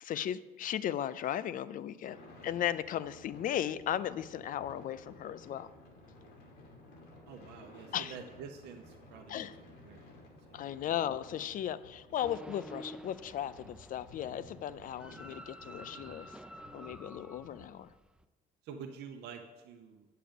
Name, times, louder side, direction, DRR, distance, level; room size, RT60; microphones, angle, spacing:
voice 1, 0.0-2.2 2.4-5.7 7.9-8.1 9.3-9.6 10.5-16.3 16.7-17.9, left 11 dB, 55° left, 16 dB, 0.5 m, -36 dB
sound 1, 2.0-17.6, left 1 dB, 90° left, 2.4 m, -55 dB
voice 2, 7.3-9.5 9.8-10.6 18.6-20.1, right 6 dB, 85° right, 3 dB, 0.8 m, -48 dB
sound 2, 12.2-18.2, right 1 dB, 5° right, 0.4 m, -50 dB
8.9 x 6.7 x 5.2 m, 1.2 s
cardioid pair, 110°, 17 cm